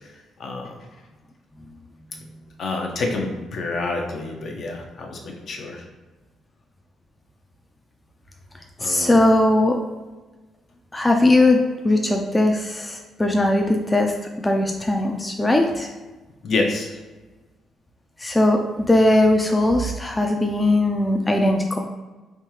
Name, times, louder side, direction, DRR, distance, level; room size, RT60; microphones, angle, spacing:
voice 1, 0.4-0.9 2.6-5.8 8.8-9.2 16.4-17.0, left 3 dB, 55° left, 2 dB, 0.6 m, -28 dB
voice 2, 8.8-9.8 10.9-14.1 14.4-15.9 18.2-21.8, left 1 dB, 15° left, 3 dB, 0.3 m, -19 dB
3.4 x 2.7 x 3.0 m, 1.2 s
cardioid pair, 95°, 0 cm